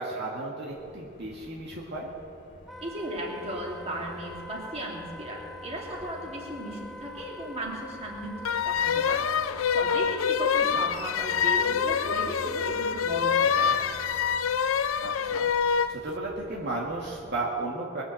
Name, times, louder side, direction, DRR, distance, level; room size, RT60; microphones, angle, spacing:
voice 1, 0.0-2.1 10.6-10.8 15.0-15.5 15.9-18.0, right 2 dB, 60° right, -3 dB, 1.8 m, -34 dB
sound 1, 0.7-17.5, equal, 40° left, 2.0 m, -51 dB
Wind instrument woodwind instrument, 2.7-15.3, left 2 dB, ahead, 0.9 m, -44 dB
voice 2, 2.8-9.3 9.7-13.8, right 1 dB, 30° right, -2 dB, 2.7 m, -36 dB
sound 2, 8.4-16.0, left 7 dB, 85° left, 0.5 m, -26 dB
21.5 x 7.2 x 7.7 m, 2.6 s
head